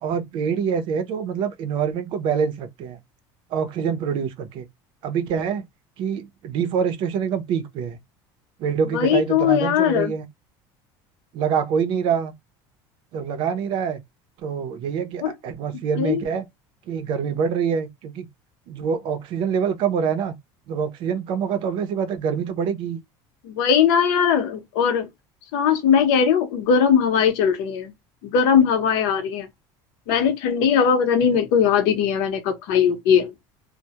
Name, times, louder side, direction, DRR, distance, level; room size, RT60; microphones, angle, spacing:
voice 1, 0.0-3.0 3.5-4.7 5.0-5.7 6.0-8.0 8.6-10.3 11.3-12.3 13.1-14.0 14.4-16.5 16.9-18.3 18.7-20.3 20.7-23.0 31.3-31.4, right 7 dB, 50° right, 0.5 m, -25 dB
voice 2, 8.9-10.1 15.2-15.3 16.0-16.2 23.4-25.1 25.5-27.9 28.2-29.5 30.1-33.3, left 7 dB, 75° left, 0.8 m, -19 dB
2.2 x 2.0 x 2.8 m
cardioid pair, 155°, 11 cm